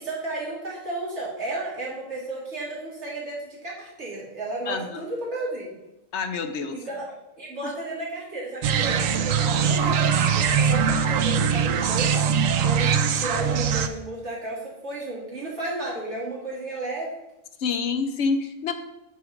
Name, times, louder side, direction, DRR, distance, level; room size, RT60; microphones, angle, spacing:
voice 1, 0.0-5.8 6.7-7.1 7.4-12.3 12.6-17.1, right 2 dB, 60° right, -5 dB, 2.8 m, -33 dB
voice 2, 4.7-5.0 6.1-6.8 7.6-7.7 17.6-18.7, left 4 dB, 65° left, 8 dB, 1.0 m, -27 dB
sound 1, 8.6-13.9, right 7 dB, 90° right, 1.0 m, -22 dB
8.7 x 4.8 x 5.1 m, 0.93 s
omnidirectional pair, 1.3 m